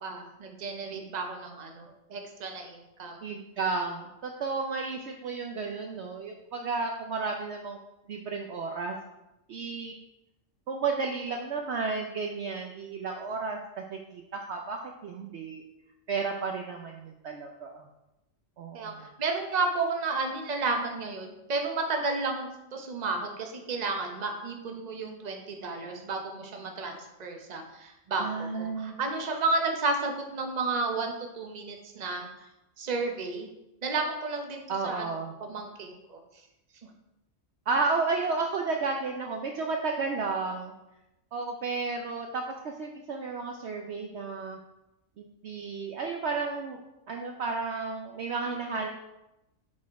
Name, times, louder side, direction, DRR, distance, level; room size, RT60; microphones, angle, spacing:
voice 1, 0.0-3.2 18.7-32.3 32.8-33.5 33.8-36.2, right 3 dB, 35° right, 3 dB, 0.9 m, -32 dB
voice 2, 3.2-7.8 8.1-9.0 9.5-9.9 10.7-15.6 16.1-17.8 18.6-19.1 28.2-29.0 34.7-35.3 37.7-40.7 41.3-44.6 45.2-46.8 47.1-48.9, right 4 dB, 60° right, 2 dB, 0.8 m, -32 dB
7.3 x 4.2 x 4.6 m, 0.93 s
omnidirectional pair, 1.4 m